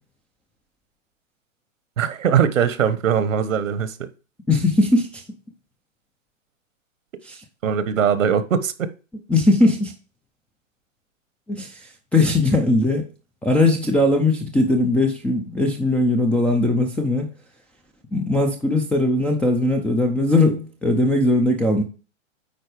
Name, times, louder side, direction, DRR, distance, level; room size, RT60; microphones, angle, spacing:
voice 1, 2.0-4.1 7.6-8.9, right 8 dB, 75° right, 13 dB, 1.3 m, -21 dB
voice 2, 4.5-5.2 7.2-7.4 9.3-9.9 11.5-11.8 12.1-13.1 13.4-17.3 18.1-21.8, left 2 dB, 5° left, 3 dB, 0.4 m, -19 dB
9.2 x 4.1 x 4.9 m, 0.33 s
hypercardioid pair, 135°, 39 cm